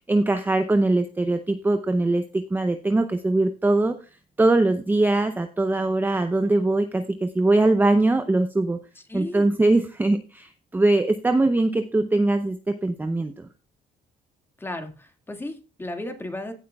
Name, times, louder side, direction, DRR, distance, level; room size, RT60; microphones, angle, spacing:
voice 1, 0.1-4.0 4.4-8.8 9.1-13.5, right 2 dB, 10° right, 7 dB, 0.7 m, -22 dB
voice 2, 9.1-9.5 14.6-16.5, left 1 dB, 15° left, 5 dB, 2.0 m, -34 dB
16.5 x 8.1 x 2.3 m, 0.34 s
cardioid pair, 110°, 17 cm